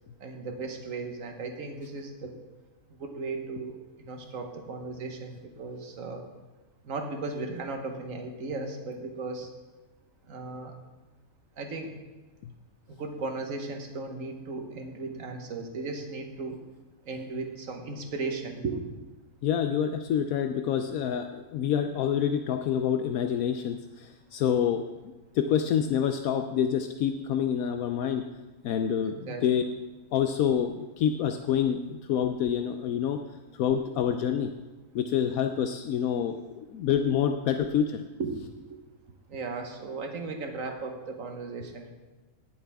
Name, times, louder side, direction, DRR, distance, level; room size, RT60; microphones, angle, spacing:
voice 1, 0.2-2.4 3.0-6.3 6.8-9.5 10.2-10.7 11.6-11.9 12.9-16.6 17.0-18.8 29.3-29.6 38.2-38.8 39.3-41.9, right 3 dB, 65° right, 4 dB, 1.6 m, -36 dB
voice 2, 19.4-24.8 25.3-28.2 28.6-29.6 30.1-33.2 33.5-34.5 34.9-38.0, left 8 dB, 75° left, 6 dB, 1.0 m, -27 dB
18.5 x 7.4 x 3.5 m, 1.2 s
omnidirectional pair, 1.5 m